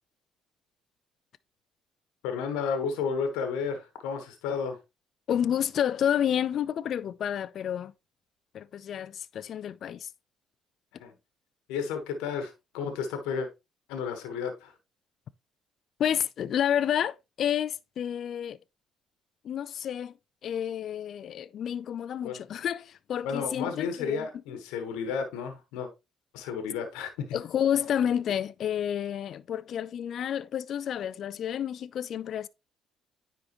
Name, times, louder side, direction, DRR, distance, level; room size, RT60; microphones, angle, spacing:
voice 1, 2.2-4.8 11.0-11.1 11.7-13.5 13.9-14.7 22.2-22.4 23.2-25.9 26.3-27.4, left 6 dB, 80° left, 1.2 m, -32 dB
voice 2, 5.3-7.9 8.5-10.1 16.0-18.6 19.4-20.1 20.4-24.3 27.3-32.5, left 9 dB, 60° left, 0.4 m, -30 dB
9.7 x 3.8 x 3.0 m
supercardioid pair, 60°, 0 cm